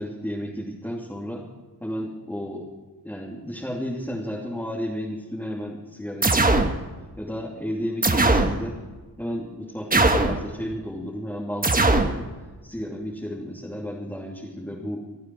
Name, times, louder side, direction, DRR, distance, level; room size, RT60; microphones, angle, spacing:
voice 1, 0.0-1.5 1.8-2.7 3.0-6.7 7.2-8.8 9.2-12.3 12.6-15.0, equal, 5° left, -4 dB, 2.9 m, -32 dB
sound 1, 6.2-6.7 8.0-8.6 9.9-10.4 11.6-12.1, right 2 dB, 20° right, 1.4 m, -19 dB
27.0 x 9.4 x 4.8 m, 1.3 s
wide cardioid pair, 105°, 41 cm